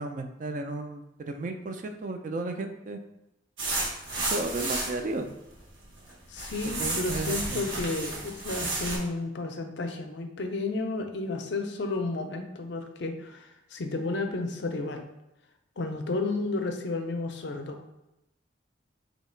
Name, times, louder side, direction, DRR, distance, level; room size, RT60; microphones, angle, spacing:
voice 1, 0.0-3.0 4.2-5.3 6.8-7.6, right 2 dB, 40° right, 6 dB, 0.3 m, -34 dB
sound 1, 3.6-5.0 5.6-6.1 6.4-9.0, right 2 dB, 80° right, 1.0 m, -32 dB
voice 2, 6.3-15.1 15.8-17.8, left 3 dB, 60° left, 6 dB, 0.5 m, -32 dB
3.2 x 2.8 x 4.3 m, 0.89 s
head